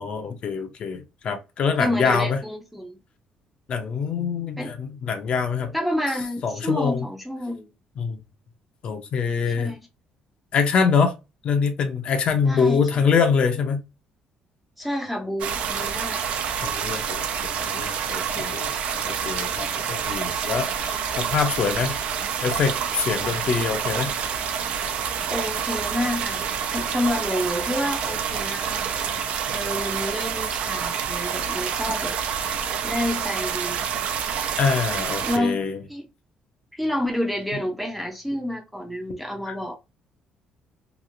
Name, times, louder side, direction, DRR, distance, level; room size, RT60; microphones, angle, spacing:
voice 1, 0.0-2.4 3.7-5.7 6.4-7.1 8.0-8.2 8.8-9.7 10.5-11.1 11.4-13.8 16.6-18.8 19.1-22.0 22.4-24.1 34.6-35.8 39.5-39.6, left 5 dB, 45° left, 0.5 m, -24 dB
voice 2, 1.8-3.0 4.6-4.7 5.7-7.7 9.5-9.8 12.4-12.8 14.8-16.2 25.3-26.4 26.7-28.9 29.5-32.2 32.5-33.8 35.2-35.6 35.9-36.0 36.7-39.8, left 1 dB, ahead, 0.5 m, -29 dB
sound 1, 15.4-35.4, right 7 dB, 60° right, 0.4 m, -28 dB
2.9 x 2.4 x 2.5 m
cardioid pair, 155°, 2 cm